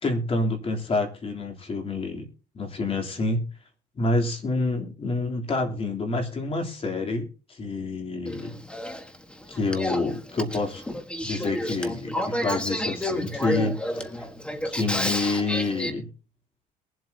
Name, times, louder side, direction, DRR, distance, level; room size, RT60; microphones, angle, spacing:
voice 1, 0.0-2.3 2.5-3.4 3.9-8.6 9.5-10.8 11.2-14.1 14.6-16.1, left 3 dB, 35° left, 2 dB, 3.4 m, -28 dB
Male speech man speaking / Female speech woman speaking / Conversation, 8.3-15.9, equal, 5° left, 1.5 m, -31 dB
22.0 x 7.8 x 2.9 m, 0.35 s
cardioid pair, 110°, 17 cm